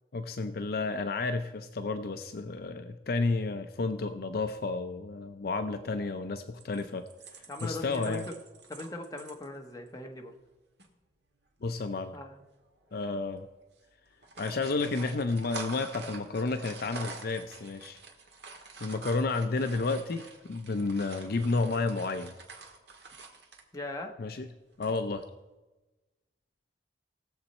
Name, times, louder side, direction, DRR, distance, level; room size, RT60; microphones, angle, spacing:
voice 1, 0.1-7.1 7.6-8.2 11.6-12.2 12.9-13.5 14.4-18.0 18.8-22.3 24.2-24.5 24.8-25.2, left 3 dB, 55° left, 9 dB, 0.5 m, -31 dB
sound 1, 6.6-9.5 9.9-10.0 10.3-10.5 10.8-10.9 11.8-12.2 12.8-12.9 13.2-13.4 14.1-23.7 24.7-25.2, right 3 dB, 65° right, 1.7 m, -46 dB
voice 2, 7.5-8.2 8.7-10.3 12.1-12.4 23.7-24.1, left 2 dB, 20° left, 2 dB, 1.1 m, -39 dB
18.5 x 7.2 x 4.2 m, 1.1 s
head